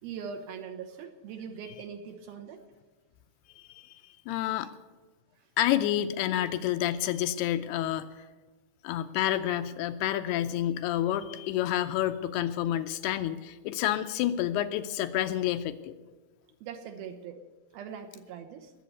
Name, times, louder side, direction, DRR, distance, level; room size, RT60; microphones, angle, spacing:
voice 1, 0.0-2.6 4.6-4.7 5.4-5.5 16.6-17.4 17.7-18.7, right 7 dB, 75° right, 6 dB, 2.7 m, -41 dB
voice 2, 3.6-4.7 5.6-8.2 8.8-15.9, left 12 dB, 80° left, 9 dB, 2.5 m, -29 dB
20.0 x 7.8 x 9.4 m, 1.2 s
omnidirectional pair, 4.8 m